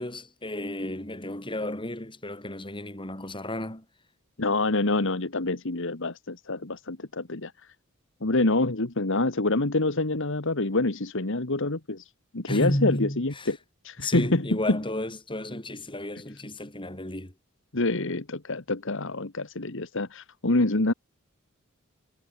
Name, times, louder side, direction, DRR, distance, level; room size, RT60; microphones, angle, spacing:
voice 1, 0.0-3.9 12.5-13.5 14.0-17.3, left 1 dB, 25° left, 6.0 m, -32 dB
voice 2, 4.4-7.7 8.2-13.6 13.8-14.8 17.7-20.9, left 2 dB, 65° left, 1.7 m, -26 dB
head